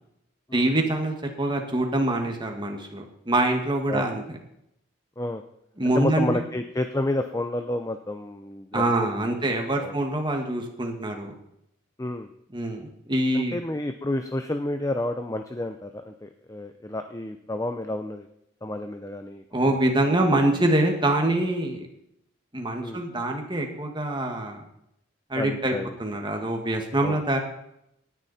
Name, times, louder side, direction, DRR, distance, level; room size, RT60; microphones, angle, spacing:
voice 1, 0.5-4.4 5.8-6.3 8.7-11.3 12.5-12.8 13.1-13.6 19.5-21.9 22.5-24.6 25.3-25.7 26.0-27.4, right 1 dB, 25° right, 3 dB, 2.0 m, -25 dB
voice 2, 5.8-9.3 9.8-9.9 12.0-12.3 13.3-18.3 18.6-19.8 22.8-23.0 25.3-25.9 27.0-27.2, left 1 dB, 15° left, 7 dB, 0.6 m, -30 dB
18.5 x 10.0 x 4.3 m, 0.79 s
head